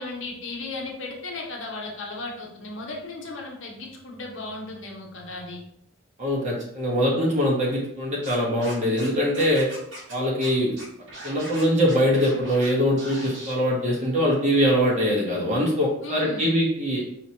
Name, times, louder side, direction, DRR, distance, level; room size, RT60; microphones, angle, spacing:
voice 1, 0.0-5.6 16.0-16.5, left 2 dB, 65° left, 0 dB, 0.9 m, -35 dB
voice 2, 6.2-9.7 10.1-10.7 11.2-17.0, equal, 35° right, -4 dB, 1.1 m, -22 dB
Scratching (performance technique), 8.2-9.1 9.3-10.1 10.4-10.5 10.8-12.7 13.0-13.5, right 1 dB, 60° right, 1.3 m, -40 dB
4.9 x 3.0 x 2.8 m, 0.75 s
head